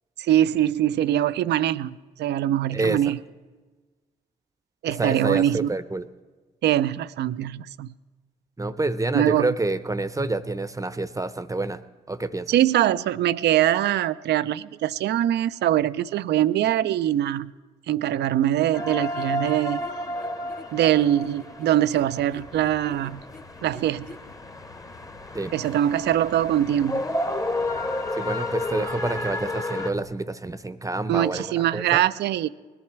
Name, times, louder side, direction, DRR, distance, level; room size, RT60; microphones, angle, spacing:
voice 1, 0.2-3.2 4.8-5.7 6.6-7.9 9.1-9.5 12.5-17.5 17.9-19.8 20.7-23.2 23.6-24.1 25.5-27.0 31.1-32.5, right 12 dB, 70° right, 17 dB, 0.4 m, -23 dB
voice 2, 2.7-3.1 4.9-6.1 8.6-11.8 12.1-12.6 25.3-25.5 28.2-31.5 31.7-32.0, right 2 dB, 20° right, 13 dB, 0.7 m, -28 dB
sound 1, 18.7-29.9, left 1 dB, 20° left, 1.0 m, -32 dB
sound 2, 18.9-24.4, left 4 dB, 50° left, 1.2 m, -47 dB
sound 3, 22.0-30.1, left 5 dB, 70° left, 1.0 m, -51 dB
20.0 x 11.0 x 4.6 m, 1.3 s
supercardioid pair, 50°, 18 cm